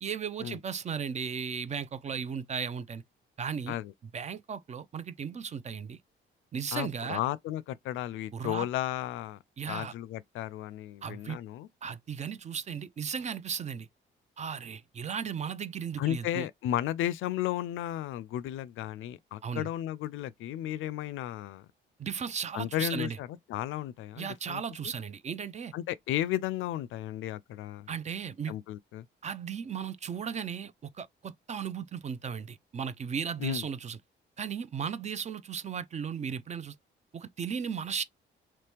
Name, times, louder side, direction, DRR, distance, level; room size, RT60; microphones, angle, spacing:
voice 1, 0.0-3.0 3.4-3.8 4.1-6.0 6.5-7.2 8.3-8.7 9.6-9.9 11.0-11.4 11.8-13.9 14.4-16.5 19.4-19.7 22.0-23.2 24.2-25.7 27.9-28.5 29.2-34.0 34.4-36.8 37.1-38.0, right 7 dB, 35° right, 0.4 m, -36 dB
voice 2, 6.7-9.4 9.7-11.7 16.0-21.7 22.5-24.6 25.7-27.9 28.5-29.1 33.4-33.6, left 13 dB, 80° left, 0.4 m, -34 dB
3.0 x 2.9 x 3.4 m
cardioid pair, 90°, 20 cm